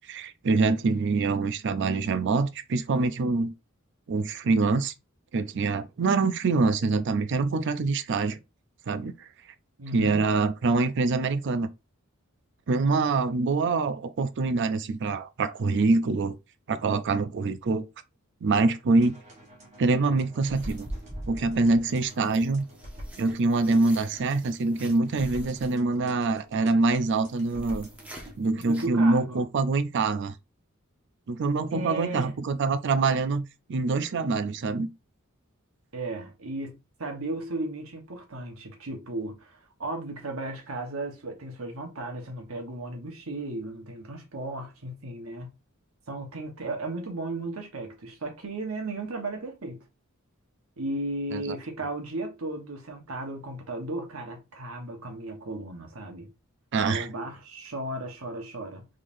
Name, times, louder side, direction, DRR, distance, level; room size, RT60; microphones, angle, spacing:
voice 1, 0.1-3.5 4.1-4.9 5.3-8.4 8.9-9.3 9.9-11.7 12.7-16.4 16.7-17.9 18.4-19.1 19.8-20.9 21.3-22.7 23.2-27.9 28.4-30.3 31.3-34.9 51.3-51.6 56.7-57.1, right 3 dB, 60° right, 0.4 m, -25 dB
voice 2, 9.8-10.3 28.6-29.4 31.7-32.3 35.9-45.5 46.1-49.8 50.8-56.3 56.8-58.9, right 2 dB, 85° right, 1.1 m, -35 dB
sound 1, 19.0-28.4, equal, 35° right, 1.2 m, -47 dB
sound 2, 20.5-28.9, equal, 5° right, 0.8 m, -44 dB
3.8 x 3.2 x 2.6 m
head